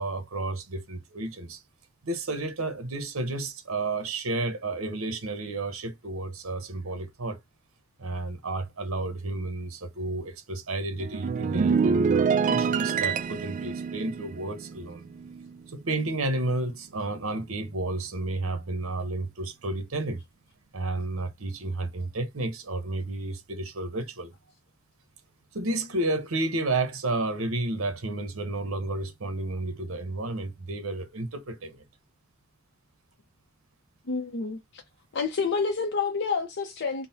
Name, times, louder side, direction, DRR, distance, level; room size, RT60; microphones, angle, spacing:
voice 1, 0.0-1.6 2.0-7.4 8.0-15.0 15.7-20.2 20.7-24.3 25.5-31.8, right 2 dB, 75° right, 0.9 m, -31 dB
sound 1, 11.0-15.6 15.9-16.2, right 5 dB, 40° right, 0.3 m, -26 dB
voice 2, 34.1-34.8 35.1-37.1, left 4 dB, 55° left, 0.6 m, -28 dB
3.8 x 2.1 x 4.0 m
head